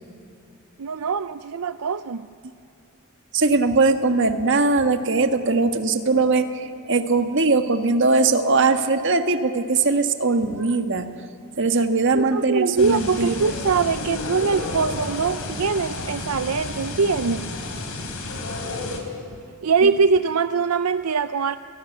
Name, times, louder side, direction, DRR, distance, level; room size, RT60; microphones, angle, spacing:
voice 1, 0.8-2.3 12.1-17.5 19.6-21.6, right 5 dB, 80° right, 11 dB, 0.6 m, -22 dB
voice 2, 3.3-6.5 6.9-11.1 11.6-13.5 19.8-19.9, right 3 dB, 55° right, 7 dB, 1.6 m, -20 dB
sound 1, 12.8-19.0, left 2 dB, 80° left, 4.1 m, -31 dB
29.0 x 19.0 x 9.3 m, 2.6 s
head